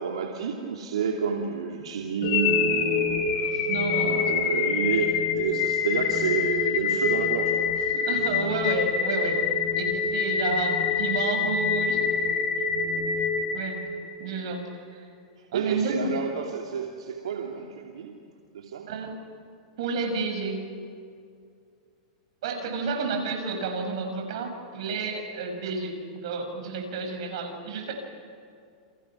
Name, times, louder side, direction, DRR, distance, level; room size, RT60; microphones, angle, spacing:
voice 1, 0.0-8.3 15.4-18.2 18.5-18.9, right 6 dB, 90° right, 1 dB, 2.6 m, -30 dB
sound 1, 2.2-14.3, left 6 dB, 60° left, 4.2 m, -26 dB
voice 2, 3.7-4.4 7.9-9.4 9.8-12.0 13.5-13.8 14.2-15.0 15.5-16.2 18.9-19.2 19.8-20.7 22.4-27.9, right 4 dB, 70° right, 4 dB, 6.8 m, -31 dB
29.5 x 29.5 x 6.1 m, 2.3 s
hypercardioid pair, 130°, 3 cm